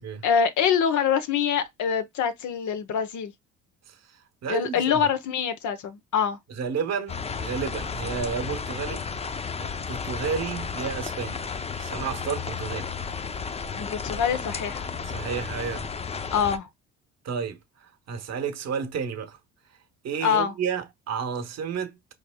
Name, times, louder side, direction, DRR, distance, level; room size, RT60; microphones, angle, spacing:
voice 1, 0.2-3.3 4.5-6.4 13.7-14.9 16.3-16.7 20.2-20.5, left 7 dB, 60° left, 0.9 m, -25 dB
voice 2, 3.9-5.0 6.5-9.2 9.6-11.4 11.8-12.9 15.1-15.9 17.2-19.4 20.0-22.0, right 6 dB, 50° right, 1.0 m, -32 dB
sound 1, 7.1-16.6, left 5 dB, 20° left, 0.5 m, -33 dB
4.6 x 3.3 x 2.2 m
hypercardioid pair, 60°, 34 cm